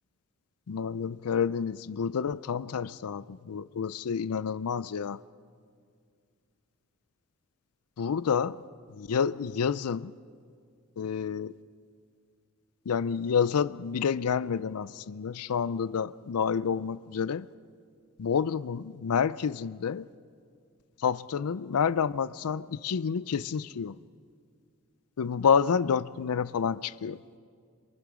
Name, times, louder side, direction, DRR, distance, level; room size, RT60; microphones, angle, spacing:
voice 1, 0.7-5.2 8.0-8.6 8.9-10.1 11.0-11.6 12.9-17.5 18.2-20.1 21.0-24.0 25.2-27.2, left 6 dB, 85° left, 0.5 m, -29 dB
27.0 x 23.5 x 4.9 m
head